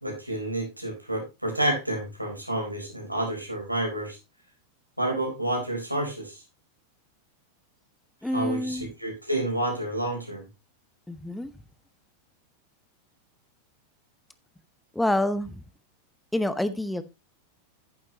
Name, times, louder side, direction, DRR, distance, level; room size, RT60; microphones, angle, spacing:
voice 1, 0.0-4.2 5.0-6.4 8.3-10.5, right 1 dB, 90° right, 1 dB, 4.1 m, -29 dB
voice 2, 8.2-8.9 11.1-11.5 14.9-15.6 16.3-17.0, left 1 dB, 5° left, 13 dB, 0.7 m, -27 dB
11.0 x 9.0 x 2.9 m, 0.24 s
figure-of-eight pair, 90°, 0 cm